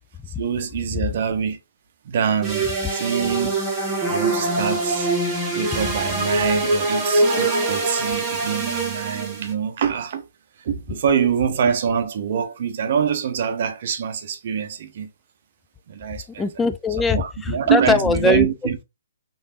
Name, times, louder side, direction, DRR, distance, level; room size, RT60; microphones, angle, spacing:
voice 1, 0.4-1.6 2.0-3.6 4.1-5.1 5.5-10.2 10.6-15.1 15.9-16.5 17.1-18.8, right 7 dB, 50° right, 0.6 m, -24 dB
sound 1, 2.4-9.5, right 2 dB, 15° right, 1.2 m, -23 dB
voice 2, 16.4-18.5, left 4 dB, 10° left, 0.4 m, -21 dB
3.2 x 3.0 x 2.5 m
figure-of-eight pair, 130°, 0 cm